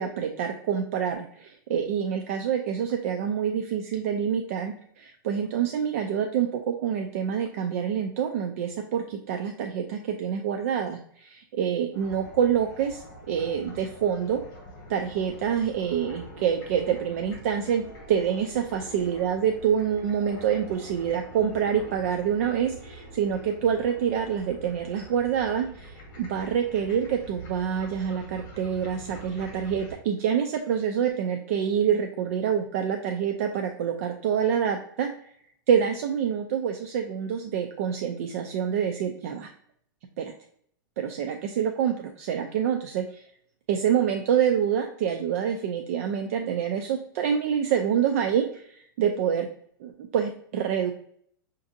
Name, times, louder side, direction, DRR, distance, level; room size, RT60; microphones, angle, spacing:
voice 1, 0.0-14.4 14.9-35.3 35.7-39.5 40.2-40.3 41.0-43.2 43.7-49.5 49.8-50.9, right 8 dB, 40° right, 4 dB, 0.4 m, -27 dB
sound 1, 11.9-29.9, right 1 dB, 30° left, 1.6 m, -45 dB
5.8 x 2.6 x 2.6 m, 0.65 s
supercardioid pair, 170°, 12 cm